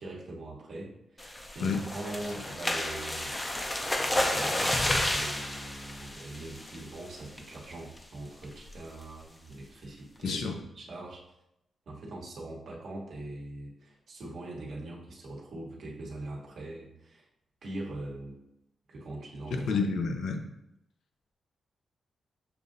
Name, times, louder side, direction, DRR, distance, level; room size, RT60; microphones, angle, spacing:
voice 1, 0.0-3.6 4.0-11.2 11.9-17.3 17.6-18.4 18.9-19.7, right 2 dB, 70° right, -3 dB, 1.1 m, -42 dB
sound 1, 1.2-7.0 7.4-7.6 8.0-8.1 8.4-8.7, left 1 dB, 20° left, 0.6 m, -31 dB
voice 2, 10.2-10.6 19.5-20.5, left 4 dB, 80° left, 4 dB, 0.6 m, -29 dB
6.7 x 2.6 x 2.6 m, 0.84 s
cardioid pair, 70°, 0 cm